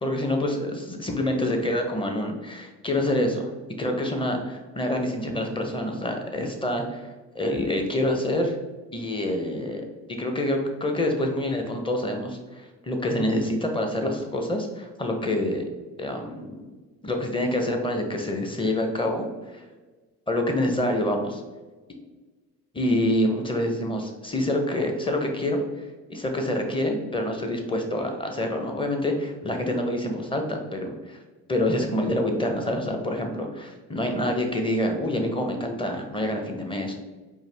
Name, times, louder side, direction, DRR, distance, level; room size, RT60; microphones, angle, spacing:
voice 1, 0.0-3.5 3.8-8.6 8.9-9.8 10.2-15.6 16.0-16.5 17.0-19.3 19.5-19.6 20.3-21.4 22.7-31.2 31.5-36.9, left 1 dB, 15° left, 3 dB, 0.8 m, -27 dB
4.6 x 2.5 x 3.4 m, 1.3 s
supercardioid pair, 85°, 32 cm